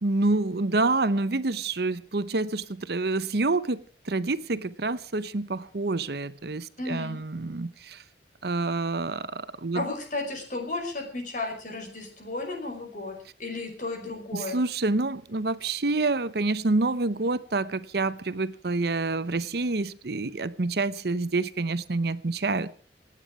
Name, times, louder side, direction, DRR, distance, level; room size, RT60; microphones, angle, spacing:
voice 1, 0.0-8.0 8.4-9.8 14.3-22.7, right 3 dB, 60° right, 0.8 m, -27 dB
voice 2, 6.8-7.2 9.7-14.6, left 2 dB, 45° left, 5.4 m, -34 dB
27.5 x 9.3 x 4.9 m
head